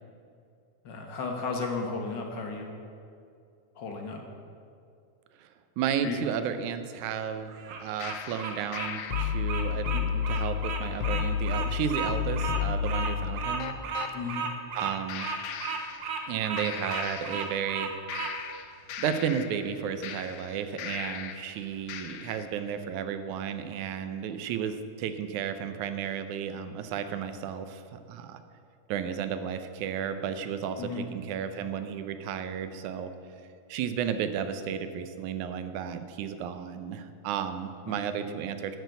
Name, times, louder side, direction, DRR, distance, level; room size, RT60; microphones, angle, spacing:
voice 1, 0.8-2.7 3.7-4.2 6.0-6.2 14.1-14.5 30.8-31.1 37.9-38.1, left 4 dB, 50° left, 2 dB, 1.5 m, -34 dB
voice 2, 5.8-7.5 7.8-13.8 14.8-15.3 16.3-17.9 19.0-28.4 28.9-33.1 33.7-38.8, right 8 dB, 90° right, 9 dB, 2.2 m, -33 dB
Bird vocalization bird call bird song, 7.5-18.3, right 5 dB, 60° right, 1.5 m, -34 dB
sound 1, 8.0-14.1 15.1-16.3 16.6-17.8 18.1-21.5 21.9-22.5, left 8 dB, 90° left, 1.3 m, -33 dB
11.0 x 6.4 x 8.1 m, 2.4 s
omnidirectional pair, 3.4 m